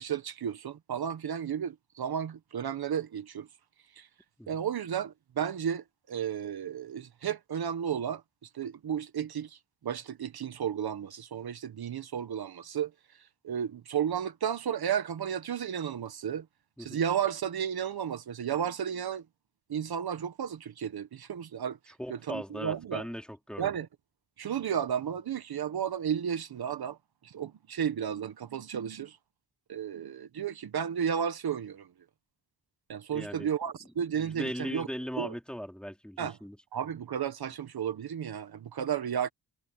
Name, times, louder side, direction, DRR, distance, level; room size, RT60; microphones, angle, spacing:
voice 1, 0.0-3.5 4.0-4.1 4.5-8.2 8.5-9.6 9.8-12.9 13.4-16.4 16.8-19.2 19.7-21.8 22.1-23.0 23.6-23.9 24.4-27.0 27.2-29.2 29.7-31.9 32.9-34.9 35.2-35.3 36.2-36.4 36.7-39.3, right 8 dB, 70° right, 1.3 m, -33 dB
voice 2, 22.0-23.7 33.1-33.5 34.1-36.6, equal, ahead, 3.9 m, -39 dB
wide cardioid pair, 100°, 39 cm